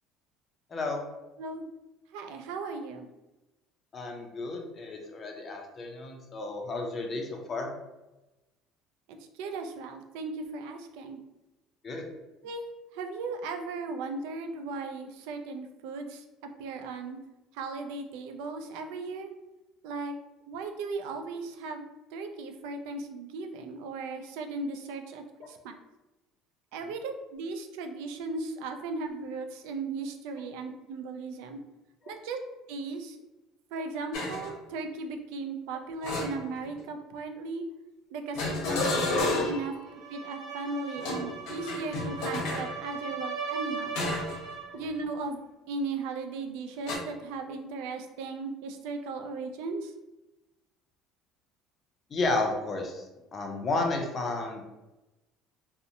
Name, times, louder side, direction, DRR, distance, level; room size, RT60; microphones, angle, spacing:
voice 1, 0.7-1.0 3.9-7.7 11.8-12.0 25.4-25.5 32.0-32.1 44.7-44.8 52.1-53.1 53.3-54.6, left 2 dB, 25° left, 2 dB, 0.4 m, -32 dB
voice 2, 2.1-3.1 9.4-11.2 12.4-12.6 12.9-16.2 16.6-17.2 17.5-19.3 19.8-20.2 20.5-21.8 22.1-25.7 26.7-31.6 32.1-32.4 32.7-33.2 33.7-37.6 38.1-39.7 40.1-43.9 44.7-45.4 45.7-49.9, right 3 dB, 90° right, 5 dB, 0.3 m, -37 dB
sound 1, 34.1-34.5 36.0-36.8 38.4-39.7 41.0-42.7 44.0-44.4 44.8-45.0 46.9-47.0, left 2 dB, 85° left, 0.7 m, -31 dB
sound 2, 39.9-44.8, right 5 dB, 65° right, 0.8 m, -38 dB
2.7 x 2.0 x 2.6 m, 1.0 s
cardioid pair, 175°, 0 cm